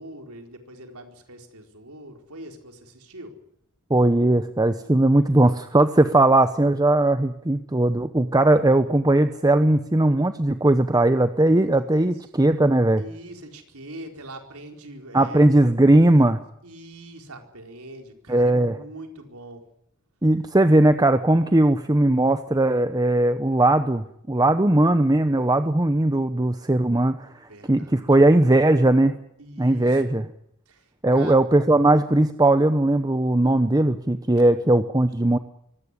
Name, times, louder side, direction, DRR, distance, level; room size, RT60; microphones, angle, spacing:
voice 1, 0.0-3.3 11.9-12.1 13.0-15.6 15.9-16.2 16.6-19.6 25.3-25.6 27.5-28.0 29.4-30.0 30.7-31.4 34.3-34.7, right 1 dB, 85° right, 4 dB, 4.5 m, -42 dB
voice 2, 3.9-13.0 15.1-16.4 18.3-18.8 20.2-29.2 29.6-30.3 31.0-35.4, right 1 dB, 15° right, 10 dB, 0.9 m, -19 dB
23.5 x 17.5 x 9.8 m, 0.74 s
head